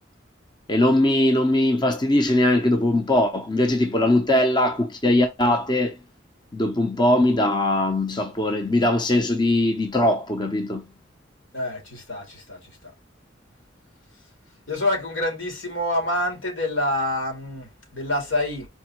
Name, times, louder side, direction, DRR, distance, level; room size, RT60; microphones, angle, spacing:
voice 1, 0.7-6.0 6.5-10.8, left 1 dB, 20° left, 0.6 m, -20 dB
voice 2, 11.5-12.8 14.7-18.7, left 1 dB, 85° left, 2.4 m, -27 dB
4.5 x 3.3 x 2.9 m
head